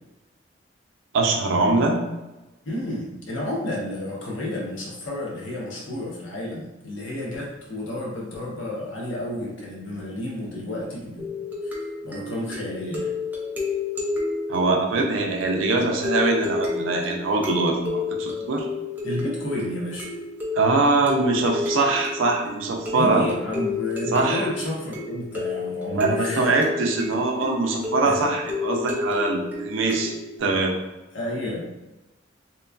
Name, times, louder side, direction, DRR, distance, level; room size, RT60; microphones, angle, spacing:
voice 1, 1.1-2.0 14.5-17.8 18.2-18.7 20.6-23.2 24.1-24.5 25.9-30.7, right 3 dB, 75° right, 1 dB, 0.5 m, -22 dB
voice 2, 2.6-11.3 11.6-11.7 12.0-13.1 19.0-20.1 22.9-26.5 28.0-28.2 31.1-31.6, left 1 dB, 75° left, -3 dB, 0.8 m, -31 dB
sound 1, 11.2-30.4, left 4 dB, 10° right, 0.4 m, -31 dB
2.9 x 2.4 x 2.3 m, 1.0 s
head